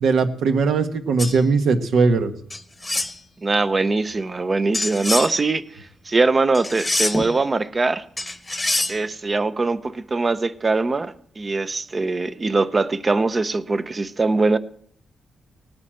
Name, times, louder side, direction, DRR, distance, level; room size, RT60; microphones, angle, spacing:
voice 1, 0.0-2.3, right 4 dB, 70° right, 7 dB, 1.4 m, -19 dB
sound 1, 1.2-1.4 2.5-3.1 4.7-5.3 6.5-7.3 8.2-9.0, left 2 dB, 10° left, 1.1 m, -25 dB
voice 2, 3.4-8.0 8.9-14.6, right 3 dB, 20° right, 14 dB, 0.6 m, -22 dB
18.5 x 9.6 x 7.6 m, 0.64 s
wide cardioid pair, 170°, 0 cm